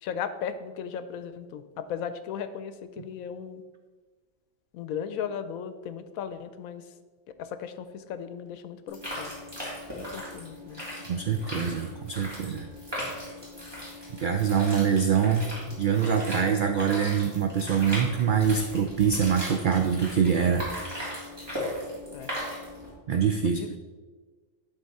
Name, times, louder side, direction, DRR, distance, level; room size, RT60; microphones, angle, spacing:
voice 1, 0.0-3.6 4.7-6.9 7.4-9.4 10.0-10.8 22.1-22.3 23.4-23.8, left 8 dB, 90° left, 11 dB, 1.0 m, -36 dB
sound 1, 8.9-22.9, equal, 20° right, 2.3 m, -38 dB
voice 2, 11.1-12.7 14.2-15.5 15.8-20.7 23.1-23.6, right 7 dB, 80° right, 5 dB, 0.4 m, -24 dB
11.0 x 3.7 x 4.1 m, 1.4 s
omnidirectional pair, 1.4 m